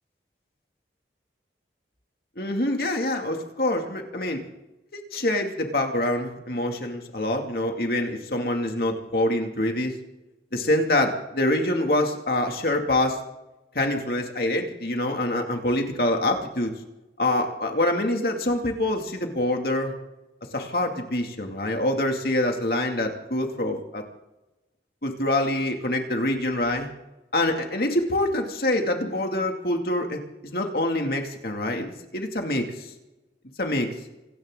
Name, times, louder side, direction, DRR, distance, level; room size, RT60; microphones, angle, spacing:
voice 1, 2.4-4.4 4.9-10.0 10.5-13.2 13.7-16.7 17.2-19.9 20.5-24.0 25.0-26.9 27.3-32.9 33.6-33.9, left 1 dB, 60° left, 3 dB, 2.4 m, -25 dB
26.5 x 14.0 x 3.8 m, 0.96 s
head